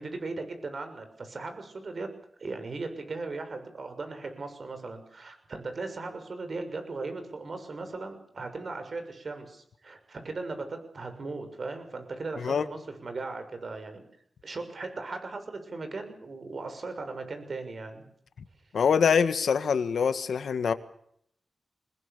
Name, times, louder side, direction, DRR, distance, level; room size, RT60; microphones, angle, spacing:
voice 1, 0.0-2.1 2.4-14.0 14.4-18.0, right 3 dB, 60° right, 8 dB, 6.7 m, -38 dB
voice 2, 18.7-20.7, left 6 dB, 85° left, 11 dB, 1.7 m, -24 dB
24.5 x 21.0 x 7.0 m, 0.69 s
cardioid pair, 55°, 0 cm